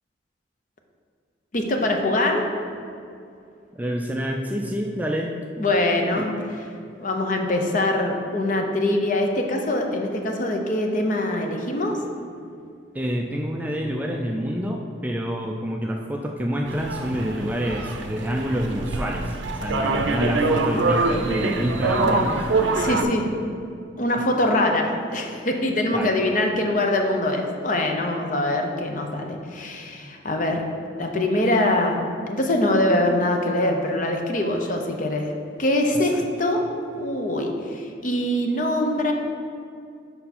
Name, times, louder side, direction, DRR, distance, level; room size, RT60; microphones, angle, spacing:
voice 1, 1.5-2.5 5.6-6.3 7.0-12.0 22.7-23.4 24.0-30.6 31.0-35.3 35.6-36.6 36.9-39.1, left 1 dB, 40° left, 3 dB, 0.7 m, -23 dB
voice 2, 3.7-5.3 6.0-6.3 12.9-22.8 25.9-26.1 35.9-36.2, equal, 10° right, 1 dB, 0.3 m, -27 dB
sound 1, 16.7-23.0, right 3 dB, 75° right, 0.5 m, -24 dB
6.8 x 5.5 x 4.2 m, 2.5 s
head